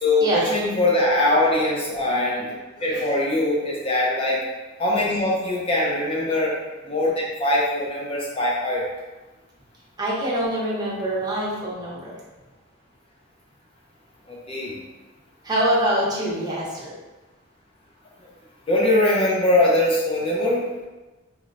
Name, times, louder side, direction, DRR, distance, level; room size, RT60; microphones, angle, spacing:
voice 1, 0.0-2.5 2.8-4.4 4.8-6.6 6.8-8.8 14.3-14.8 18.7-20.6, left 1 dB, 30° left, -4 dB, 0.6 m, -22 dB
voice 2, 10.0-12.1 15.4-16.9, right 1 dB, 20° right, -6 dB, 0.9 m, -24 dB
4.2 x 3.1 x 2.5 m, 1.1 s
head